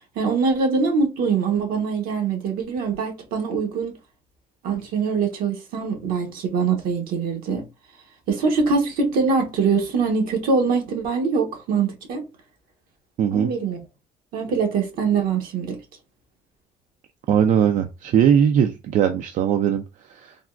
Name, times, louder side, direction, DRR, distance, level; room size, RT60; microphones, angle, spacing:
voice 1, 0.2-4.0 4.6-7.7 8.3-12.2 13.3-13.8 14.3-15.8, right 5 dB, 75° right, 1.0 m, -23 dB
voice 2, 13.2-13.5 17.3-20.4, right 8 dB, 60° right, 0.4 m, -20 dB
3.4 x 2.2 x 2.4 m
cardioid pair, 100°, 15 cm